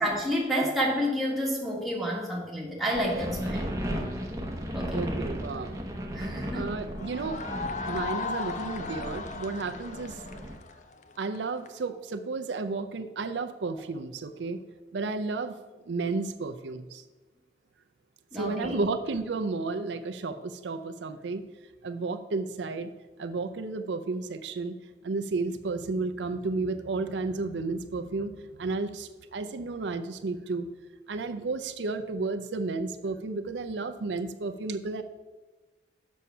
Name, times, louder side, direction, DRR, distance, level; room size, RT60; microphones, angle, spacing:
voice 1, 0.0-3.7 4.7-5.1 6.1-6.7 18.3-18.8, equal, ahead, -4 dB, 1.7 m, -29 dB
sound 1, 2.9-10.5, equal, 15° right, 0.9 m, -35 dB
voice 2, 4.9-5.8 6.5-7.4 7.9-10.2 11.2-14.6 14.9-15.5 15.9-17.0 18.3-21.4 21.8-22.9 23.2-24.7 25.0-30.7 31.1-35.0, right 3 dB, 80° right, 8 dB, 0.5 m, -32 dB
sound 2, 7.0-11.7, left 4 dB, 40° left, 0.5 m, -36 dB
7.0 x 6.2 x 5.6 m, 1.2 s
head